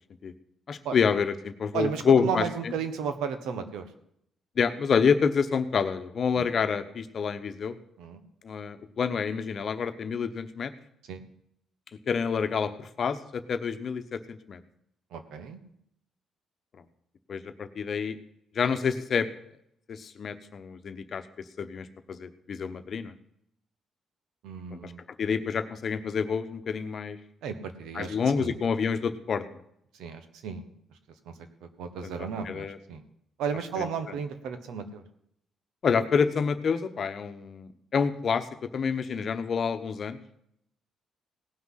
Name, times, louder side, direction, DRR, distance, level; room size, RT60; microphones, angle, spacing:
voice 1, 0.7-2.4 4.6-7.8 8.4-10.7 12.1-14.6 17.3-18.2 18.5-19.3 19.9-21.2 21.6-23.1 24.7-24.9 25.2-27.2 27.9-29.4 32.0-32.1 32.4-32.8 33.8-33.9 35.8-38.5 38.7-40.2, left 6 dB, 50° left, 10 dB, 1.0 m, -28 dB
voice 2, 1.7-3.9 6.3-6.5 8.0-8.2 11.1-11.2 15.1-15.6 24.4-25.0 27.4-28.5 29.9-30.6 31.2-31.3 31.6-33.0 33.4-35.0, right 6 dB, 85° right, 9 dB, 1.3 m, -34 dB
18.0 x 6.1 x 5.7 m, 0.74 s
cardioid pair, 90°, 0 cm